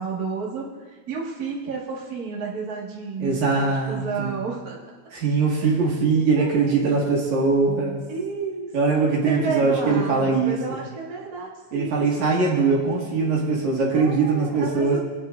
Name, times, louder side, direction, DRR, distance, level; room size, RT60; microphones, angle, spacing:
voice 1, 0.0-4.8 5.6-5.8 6.4-7.0 8.1-9.0 9.2-12.1 13.9-15.0, right 5 dB, 35° right, -4 dB, 1.8 m, -31 dB
voice 2, 3.2-4.4 5.1-8.0 8.7-10.6 11.7-15.0, right 4 dB, 85° right, -3 dB, 3.2 m, -21 dB
22.5 x 8.8 x 2.6 m, 1.3 s
omnidirectional pair, 3.3 m